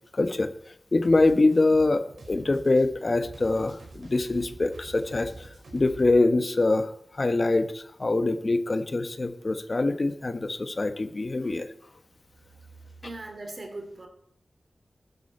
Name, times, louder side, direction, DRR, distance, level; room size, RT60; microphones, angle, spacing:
voice 1, 0.1-0.5 0.9-11.7, left 2 dB, 50° left, 9 dB, 1.1 m, -24 dB
sound 1, 1.0-6.2, right 3 dB, 90° right, 4.9 m, -46 dB
voice 2, 13.0-14.1, right 2 dB, 55° right, 4 dB, 3.0 m, -39 dB
13.5 x 11.0 x 4.3 m, 0.70 s
cardioid pair, 55°, 0 cm